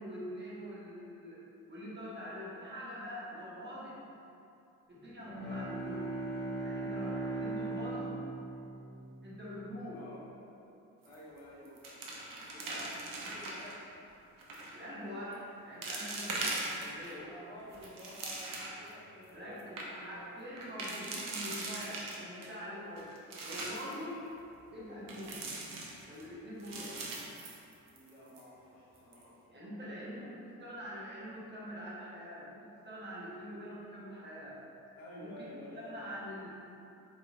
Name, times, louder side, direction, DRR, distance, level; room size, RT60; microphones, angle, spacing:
voice 1, 0.0-1.4 1.7-4.0 4.9-6.1 6.6-8.2 9.2-10.0 14.7-17.2 19.3-23.1 23.4-24.2 24.7-25.4 26.0-27.0 29.5-34.6 35.2-35.5 35.8-36.5, equal, 25° right, -7 dB, 1.3 m, -44 dB
Bowed string instrument, 5.2-9.7, right 2 dB, 5° left, 1.4 m, -38 dB
voice 2, 9.9-10.2 11.0-13.8 17.1-20.5 27.9-30.3 34.9-36.0, equal, 75° left, -7 dB, 1.1 m, -51 dB
sound 1, 11.0-11.4 11.6-13.7 14.4-14.8 15.3-15.4 15.8-17.1 17.6-18.9 19.3-19.4 19.6-19.9 20.6-22.5 23.0-23.9 25.1-26.2 26.6-28.1 28.4-28.5 29.0-29.2, right 2 dB, 50° right, 0.9 m, -40 dB
4.5 x 4.4 x 2.6 m, 2.8 s
figure-of-eight pair, 40°, 43 cm